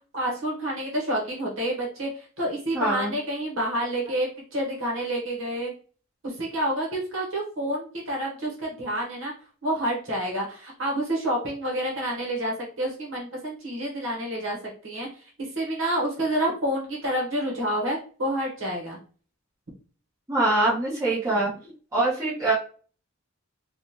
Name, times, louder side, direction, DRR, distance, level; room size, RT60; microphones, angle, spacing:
voice 1, 0.1-5.7 6.2-9.3 9.6-14.6 14.8-15.1 15.4-19.0, right 1 dB, 65° right, -2 dB, 1.0 m, -28 dB
voice 2, 2.7-3.1 20.3-21.5 21.9-22.5, right 2 dB, 15° right, -8 dB, 1.2 m, -23 dB
3.6 x 2.4 x 2.8 m, 0.41 s
head